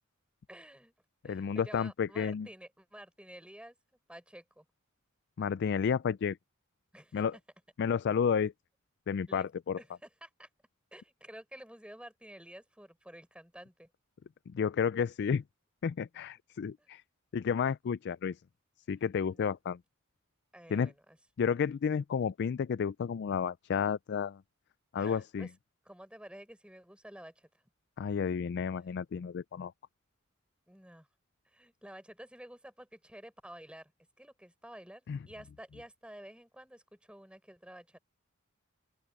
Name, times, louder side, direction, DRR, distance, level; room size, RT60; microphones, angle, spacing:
voice 1, 0.5-0.9 1.2-3.7 4.1-4.6 6.9-7.2 9.3-9.5 9.8-10.5 10.9-13.9 16.8-16.9 19.3-19.5 20.5-21.2 25.0-25.5 25.8-27.5 30.7-31.1 31.4-33.9 34.2-38.0, right 1 dB, 5° right, 6.8 m, -51 dB
voice 2, 1.2-2.5 5.4-6.4 7.1-7.3 7.8-8.5 9.1-9.8 14.5-15.4 15.8-17.0 17.3-18.4 18.9-19.8 20.7-20.9 21.4-24.4 24.9-25.5 28.0-29.7 35.1-35.2, left 6 dB, 50° left, 0.3 m, -31 dB
open air
head